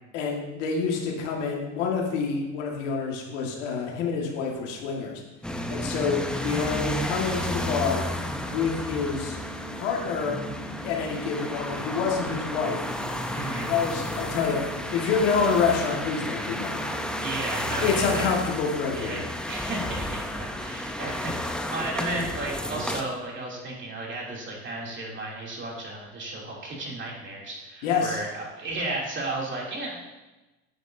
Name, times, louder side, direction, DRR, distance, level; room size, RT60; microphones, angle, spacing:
voice 1, 0.1-5.2 5.7-8.1 8.5-9.4 9.7-10.4 10.8-12.8 13.6-14.6 14.9-16.8 17.8-19.3 27.8-28.2, left 5 dB, 90° left, -1 dB, 1.9 m, -27 dB
sound 1, 5.4-23.0, left 1 dB, ahead, 0.6 m, -32 dB
voice 2, 6.4-6.7 13.3-13.7 17.2-18.3 18.9-19.2 19.5-20.2 20.5-30.0, right 2 dB, 30° right, -3 dB, 2.9 m, -34 dB
Organ, 7.8-18.7, right 4 dB, 45° right, 2.9 m, -44 dB
9.7 x 8.0 x 2.7 m, 1.1 s
supercardioid pair, 100°, 36 cm